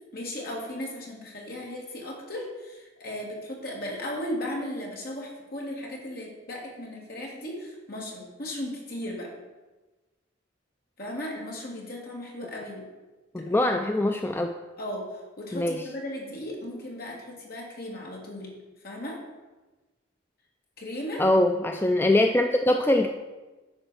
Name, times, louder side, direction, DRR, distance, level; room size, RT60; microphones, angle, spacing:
voice 1, 0.1-9.3 11.0-12.9 13.4-14.0 14.8-18.5 18.8-19.2 20.8-21.3, left 1 dB, 50° left, -1 dB, 2.2 m, -36 dB
voice 2, 13.3-14.5 15.5-15.8 21.2-23.1, left 1 dB, 10° left, 4 dB, 0.4 m, -23 dB
10.0 x 4.5 x 6.9 m, 1.2 s
head